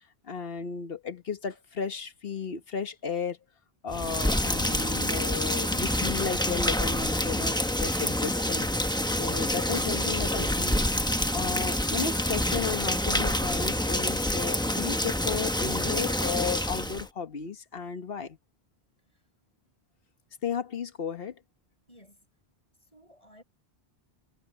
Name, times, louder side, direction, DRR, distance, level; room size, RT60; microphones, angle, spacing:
voice 1, 0.2-3.4 3.8-10.8 11.3-18.4 20.4-21.3, left 6 dB, 60° left, 1.4 m, -34 dB
Rain, 3.9-17.1, left 1 dB, 5° left, 0.8 m, -27 dB
voice 2, 21.9-22.3 22.8-23.4, equal, 30° left, 7.4 m, -56 dB
omnidirectional pair, 1.1 m